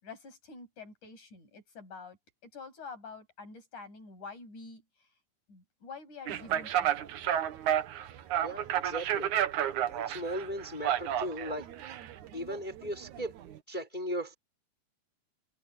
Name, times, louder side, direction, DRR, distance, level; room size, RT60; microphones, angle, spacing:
voice 1, 0.0-2.2 2.4-4.8 5.5-7.1, left 4 dB, 70° left, 9.5 m, -47 dB
sound 1, 6.3-13.6, right 10 dB, 70° right, 2.5 m, -32 dB
voice 2, 8.4-9.3 9.9-11.7 12.3-13.3 13.7-14.3, equal, 15° left, 3.9 m, -37 dB
omnidirectional pair, 3.6 m